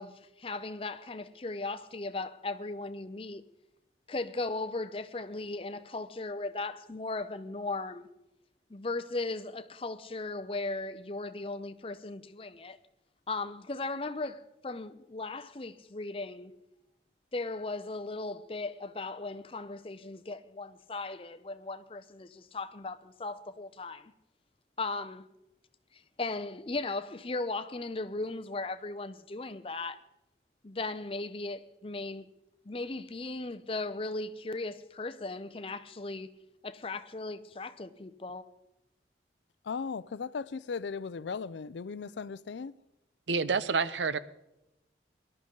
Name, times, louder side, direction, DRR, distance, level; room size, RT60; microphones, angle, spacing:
voice 1, 0.0-3.4 4.1-8.1 8.7-12.8 13.3-16.5 17.3-24.1 24.8-25.3 25.9-30.0 30.6-32.3 32.6-36.3 36.6-38.4, left 3 dB, 30° left, 0.6 m, -37 dB
voice 2, 39.6-42.7, left 5 dB, 80° left, 0.4 m, -37 dB
voice 3, 43.3-44.2, right 5 dB, 90° right, 0.7 m, -28 dB
19.5 x 12.0 x 3.9 m
head